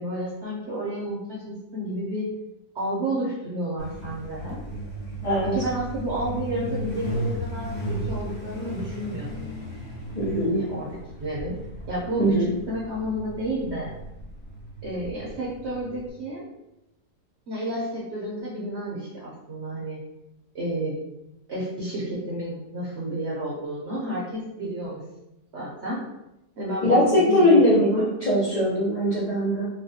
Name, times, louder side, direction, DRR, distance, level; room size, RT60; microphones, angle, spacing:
voice 1, 0.0-2.3 2.7-4.6 5.4-9.5 10.4-11.5 11.9-13.9 14.8-16.4 17.5-20.0 20.5-21.0 21.5-25.0 25.5-26.0 26.6-28.1, right 1 dB, 55° right, -5 dB, 0.8 m, -31 dB
Truck, 3.8-16.1, right 1 dB, 45° left, 0.8 m, -35 dB
voice 2, 5.2-5.5 10.1-10.6 12.2-12.5 26.8-29.7, left 1 dB, 80° left, -7 dB, 0.3 m, -20 dB
4.1 x 2.2 x 2.7 m, 0.90 s
omnidirectional pair, 1.7 m